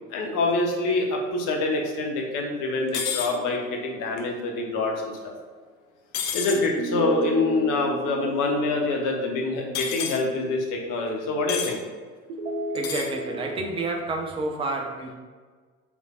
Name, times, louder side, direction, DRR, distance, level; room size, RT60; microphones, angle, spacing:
voice 1, 0.1-5.3 6.3-11.8, left 2 dB, 45° left, 1 dB, 0.8 m, -26 dB
sound 1, 2.9-3.3 6.1-6.6 9.7-10.2 11.5-11.7 12.7-13.1, left 8 dB, 75° left, 0.6 m, -29 dB
sound 2, 3.2-4.8 6.8-9.9 12.3-13.7, right 1 dB, 65° right, 0.7 m, -34 dB
voice 2, 12.7-15.1, right 2 dB, 15° right, 2 dB, 0.3 m, -30 dB
3.4 x 3.2 x 2.3 m, 1.5 s
figure-of-eight pair, 65°, 43 cm